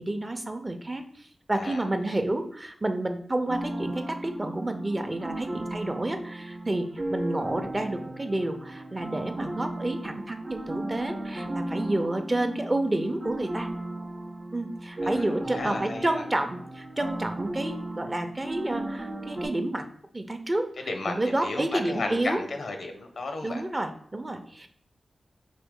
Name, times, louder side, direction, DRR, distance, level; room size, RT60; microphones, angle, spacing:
voice 1, 0.0-13.7 14.5-19.9 20.1-22.4 23.4-24.7, right 1 dB, 25° right, 7 dB, 0.6 m, -30 dB
sound 1, 3.5-19.5, right 1 dB, 50° right, 0.8 m, -35 dB
voice 2, 15.5-16.1 20.9-23.6, left 3 dB, 80° left, 5 dB, 0.7 m, -33 dB
5.1 x 2.7 x 3.6 m, 0.62 s
cardioid pair, 60°, 0 cm